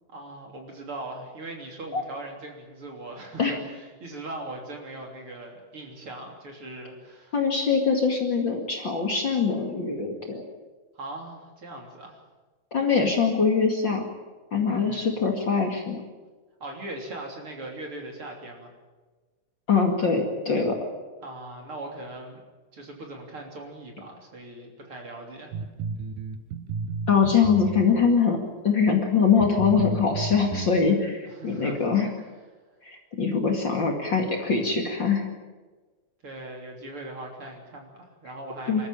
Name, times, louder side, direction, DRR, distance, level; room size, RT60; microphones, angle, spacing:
voice 1, 0.1-7.4 10.9-12.2 14.7-15.2 16.6-18.7 21.2-22.4 22.7-25.5 31.3-31.9 36.2-38.9, right 2 dB, 45° right, 1 dB, 4.0 m, -40 dB
voice 2, 7.3-10.4 12.7-14.0 14.5-16.0 19.7-20.8 27.1-28.4 28.6-32.1 32.8-35.3 38.7-38.8, left 5 dB, 40° left, 2 dB, 2.7 m, -23 dB
sound 1, 25.5-28.2 28.9-29.0 29.4-30.7, right 5 dB, 85° right, 2.6 m, -32 dB
25.5 x 14.0 x 9.0 m, 1.3 s
omnidirectional pair, 3.5 m